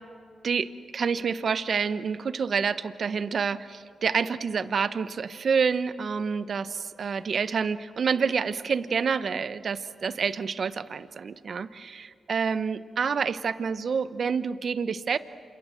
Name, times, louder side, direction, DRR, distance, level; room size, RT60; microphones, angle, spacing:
voice 1, 0.9-15.2, right 6 dB, 60° right, 14 dB, 1.0 m, -28 dB
28.0 x 27.0 x 7.5 m, 2.2 s
cardioid pair, 55°, 0 cm